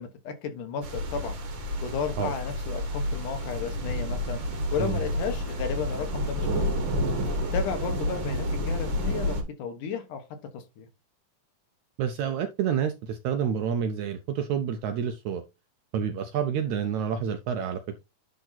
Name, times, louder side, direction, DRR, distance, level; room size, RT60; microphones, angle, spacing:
voice 1, 0.0-1.4 1.8-4.4 4.7-6.9 7.5-10.2 10.5-10.9, left 6 dB, 70° left, 2.7 m, -33 dB
sound 1, 0.8-9.4, equal, 45° right, 1.6 m, -30 dB
voice 2, 12.0-15.4 15.9-17.8, right 8 dB, 75° right, 1.7 m, -28 dB
10.5 x 3.9 x 4.0 m
omnidirectional pair, 4.1 m